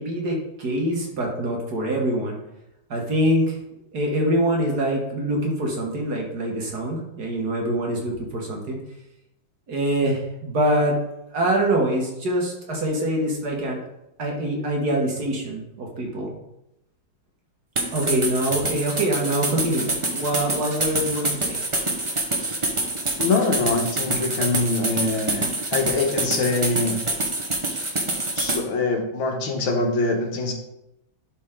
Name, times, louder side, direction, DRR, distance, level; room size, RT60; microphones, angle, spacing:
voice 1, 0.0-2.4 2.9-3.6 3.9-8.8 9.7-11.0 11.3-13.8 14.2-16.4 17.9-21.6 22.4-22.6 27.7-28.0, right 1 dB, 50° right, 0 dB, 1.9 m, -24 dB
sound 1, 17.7-28.6, right 2 dB, 25° right, 0.7 m, -26 dB
voice 2, 23.2-25.5 25.7-27.0 28.4-30.5, left 3 dB, 75° left, 3 dB, 2.0 m, -24 dB
11.5 x 4.5 x 3.7 m, 0.88 s
omnidirectional pair, 2.2 m